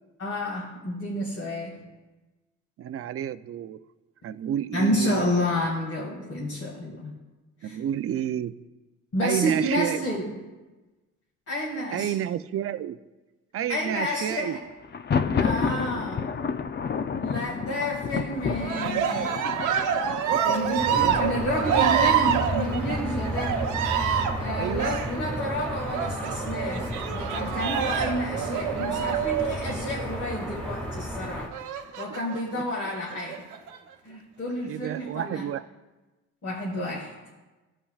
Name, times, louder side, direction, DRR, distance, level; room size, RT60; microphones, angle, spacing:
voice 1, 0.2-1.8 4.7-7.2 7.6-7.8 9.1-10.4 11.5-12.1 13.7-14.6 15.4-16.3 17.2-19.3 20.4-23.6 24.3-31.5 32.0-33.4 34.0-35.4 36.4-37.2, equal, 50° left, -3 dB, 1.9 m, -30 dB
voice 2, 2.8-3.8 4.2-5.2 7.6-8.5 9.2-10.1 11.9-13.0 13.5-14.6 20.9-21.2 24.6-25.0 28.4-29.3 32.6-32.7 34.7-35.7, right 10 dB, 50° right, 13 dB, 0.4 m, -30 dB
Thunder, 14.8-22.6, left 6 dB, 35° left, 0.5 m, -30 dB
Cheering, 18.6-30.3 31.5-32.4 33.1-33.8, right 8 dB, 85° right, 0.9 m, -27 dB
sound 1, 20.8-31.5, equal, 5° left, 1.8 m, -32 dB
15.5 x 5.5 x 2.4 m, 1.2 s
cardioid pair, 90°, 30 cm